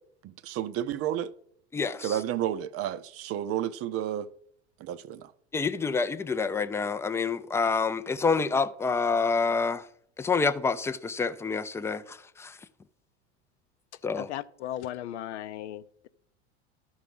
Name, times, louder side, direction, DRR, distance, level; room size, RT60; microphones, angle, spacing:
voice 1, 0.2-1.3 2.0-4.3 4.8-5.3, right 11 dB, 45° right, 0.6 m, -31 dB
voice 2, 1.7-2.2 5.5-9.9 10.2-12.6 14.0-14.3, left 4 dB, 10° left, 0.4 m, -27 dB
voice 3, 14.2-16.1, left 12 dB, 85° left, 0.6 m, -37 dB
12.0 x 4.8 x 5.4 m
hypercardioid pair, 95°, 34 cm